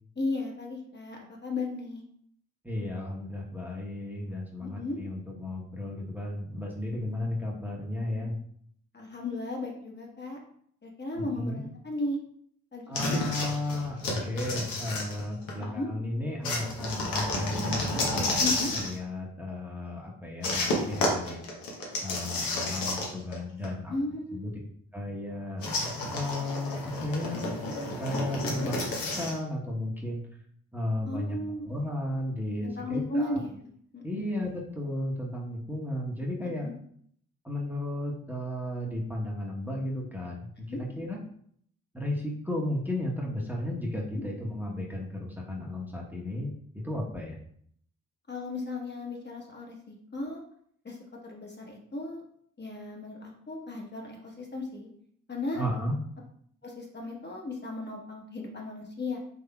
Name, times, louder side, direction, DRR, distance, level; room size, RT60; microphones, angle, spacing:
voice 1, 0.2-2.0 4.6-5.0 8.9-10.4 10.8-12.2 12.7-13.2 15.6-15.9 18.4-18.7 23.9-24.5 28.6-28.7 31.0-31.7 32.6-34.3 36.6-36.7 40.7-40.8 44.1-44.2 48.3-50.4 50.8-51.0 51.2-52.2 52.6-54.9 55.3-55.6 56.6-59.2, left 2 dB, 30° left, -1 dB, 1.0 m, -35 dB
voice 2, 2.6-8.3 11.1-11.6 12.9-18.4 18.7-21.4 22.0-23.9 24.3-24.5 24.9-25.6 26.1-27.4 28.0-28.8 29.2-30.2 30.7-31.4 31.6-33.4 34.0-36.7 37.4-41.2 41.9-47.4 55.5-56.0, left 1 dB, 5° right, -3 dB, 0.9 m, -34 dB
sound 1, 12.9-15.6 16.4-19.0 20.4-23.4 23.6-23.7 25.6-29.4, left 2 dB, 85° left, 0.8 m, -31 dB
3.8 x 3.1 x 2.2 m, 0.65 s
supercardioid pair, 40°, 34 cm